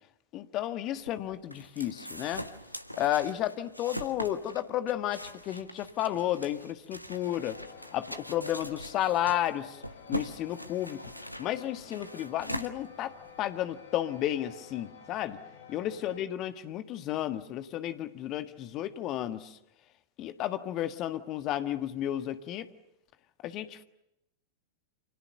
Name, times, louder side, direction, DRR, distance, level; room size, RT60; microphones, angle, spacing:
voice 1, 0.3-2.4 3.0-7.6 7.9-9.8 10.1-11.0 11.4-15.4 15.7-19.6 20.2-22.7 23.4-23.8, left 12 dB, 35° left, 10 dB, 1.6 m, -32 dB
sound 1, 0.9-13.4, equal, 90° left, 1.2 m, -42 dB
sound 2, 7.1-16.2, left 7 dB, 65° left, 3.3 m, -51 dB
28.5 x 27.0 x 6.9 m, 0.82 s
figure-of-eight pair, 90°, 0 cm